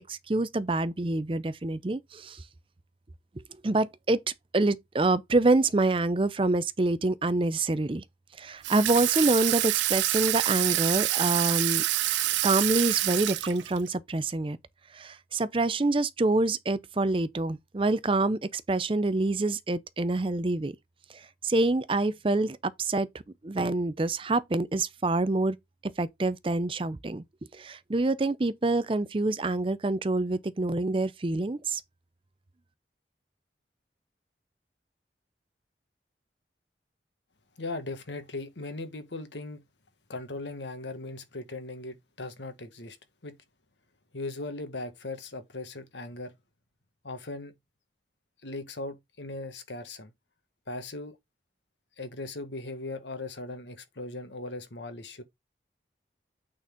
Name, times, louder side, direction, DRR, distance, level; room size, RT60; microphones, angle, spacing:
voice 1, 0.1-2.4 3.6-4.2 4.5-8.0 8.4-11.8 12.4-14.6 14.9-20.7 21.4-23.1 23.4-25.6 25.8-27.2 27.5-31.8, right 2 dB, 30° right, 0.5 m, -26 dB
Water tap faucet / Sink (filling or washing), 8.6-13.9, right 16 dB, 85° right, 0.4 m, -27 dB
voice 2, 37.6-39.6 40.1-43.0 43.2-43.4 44.1-46.3 47.0-47.5 48.4-50.1 50.7-51.2 52.0-55.2, left 2 dB, 85° left, 1.5 m, -38 dB
8.7 x 4.2 x 3.7 m
head